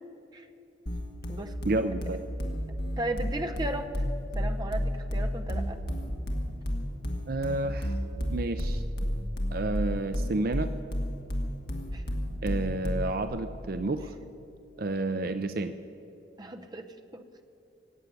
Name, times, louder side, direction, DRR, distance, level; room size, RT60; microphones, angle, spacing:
sound 1, 0.9-13.2, equal, 55° left, 1.9 m, -31 dB
voice 1, 1.6-2.2 7.3-8.0 8.3-8.8 9.5-10.7 12.4-14.2 14.8-15.8, right 2 dB, 50° right, 9 dB, 0.5 m, -30 dB
voice 2, 3.0-4.0 4.3-5.8 11.9-12.0 16.4-17.4, right 1 dB, 20° right, 5 dB, 0.8 m, -36 dB
18.0 x 8.2 x 9.5 m, 2.9 s
head